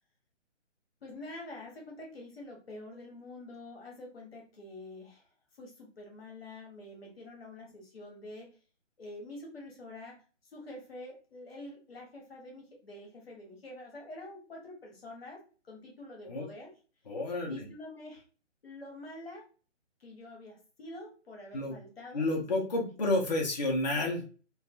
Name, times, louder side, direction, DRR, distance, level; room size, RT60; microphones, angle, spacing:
voice 1, 1.0-5.3 5.6-8.5 9.0-10.2 10.4-16.7 17.5-18.2 18.6-19.4 20.0-22.2, left 2 dB, 50° left, 0 dB, 0.9 m, -47 dB
voice 2, 17.1-17.7 21.5-21.7 22.1-24.2, left 2 dB, 35° left, 0 dB, 0.5 m, -30 dB
2.4 x 2.2 x 2.3 m, 0.37 s
figure-of-eight pair, 140°, 37 cm